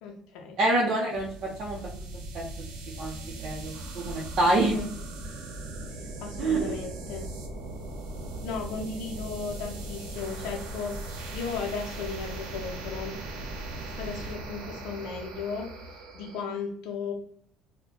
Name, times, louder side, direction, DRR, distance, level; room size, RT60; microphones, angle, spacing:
voice 1, 0.0-0.6 4.6-4.9 6.0-7.3 8.4-13.2 14.0-17.1, left 5 dB, 70° left, 1 dB, 0.5 m, -36 dB
voice 2, 0.6-1.9 2.3-2.4 3.0-4.7 6.4-6.7, right 2 dB, 40° right, -4 dB, 0.6 m, -26 dB
sound 1, 1.1-16.4, right 2 dB, 85° right, 0.9 m, -39 dB
4.2 x 2.1 x 2.8 m, 0.63 s
cardioid pair, 175°, 0 cm